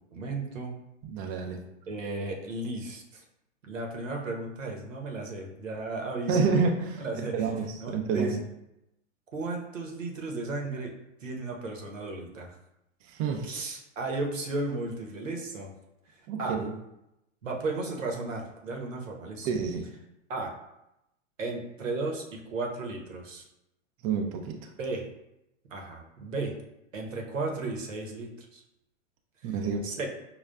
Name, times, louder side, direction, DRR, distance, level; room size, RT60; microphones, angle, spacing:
voice 1, 0.1-0.7 1.2-1.3 1.9-3.2 3.6-6.4 7.0-7.5 7.8-8.4 9.3-10.9 11.2-12.6 13.4-15.7 16.1-16.6 17.4-19.5 20.3-20.5 21.4-23.4 24.8-25.0 25.7-26.6 26.9-28.6 29.8-30.1, right 3 dB, 80° right, 1 dB, 0.9 m, -34 dB
voice 2, 1.0-1.6 6.3-8.4 13.0-13.5 16.3-16.7 19.4-19.9 24.0-24.6 29.4-30.1, right 5 dB, 30° right, 3 dB, 0.4 m, -29 dB
5.3 x 2.3 x 2.2 m, 0.87 s
hypercardioid pair, 105°, 38 cm